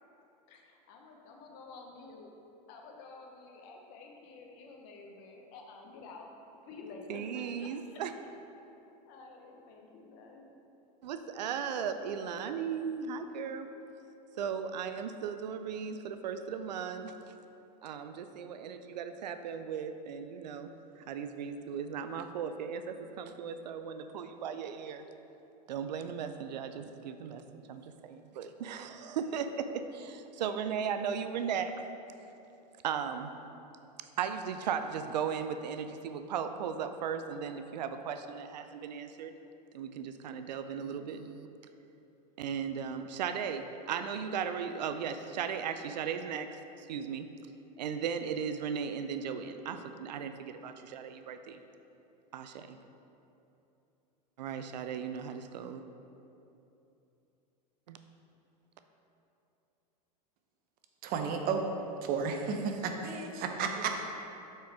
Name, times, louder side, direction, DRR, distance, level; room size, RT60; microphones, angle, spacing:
voice 1, 0.5-2.3 2.7-6.3 6.6-8.0 9.1-10.5, left 3 dB, 55° left, 1 dB, 1.0 m, -50 dB
voice 2, 7.1-8.1 11.0-13.7 14.3-17.2 17.8-20.7 21.1-25.0 25.7-27.4 27.7-31.7 32.8-33.3 34.2-39.3 39.7-41.5 42.4-46.5 46.8-47.3 47.8-51.6 52.3-52.8 54.4-55.8 57.9-58.0, right 7 dB, 90° right, 9 dB, 0.4 m, -36 dB
voice 3, 61.0-61.7 62.0-64.0, right 5 dB, 45° right, 4 dB, 0.8 m, -32 dB
7.5 x 4.4 x 3.5 m, 2.8 s
hypercardioid pair, 105°, 21 cm